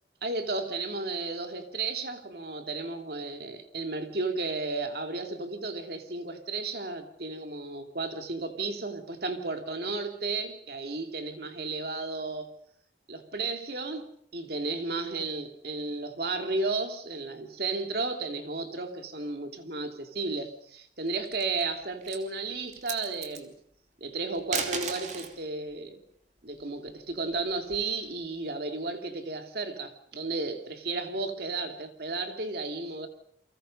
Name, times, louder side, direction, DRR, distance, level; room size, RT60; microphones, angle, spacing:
voice 1, 0.2-12.5 13.1-23.5 24.0-26.0 26.4-33.1, right 3 dB, 55° right, 2.7 m, -33 dB
sound 1, 21.1-21.6 22.0-22.3 22.7-23.4 24.3-25.4 26.9-28.0, right 5 dB, 40° right, 2.9 m, -35 dB
29.5 x 24.0 x 5.4 m
head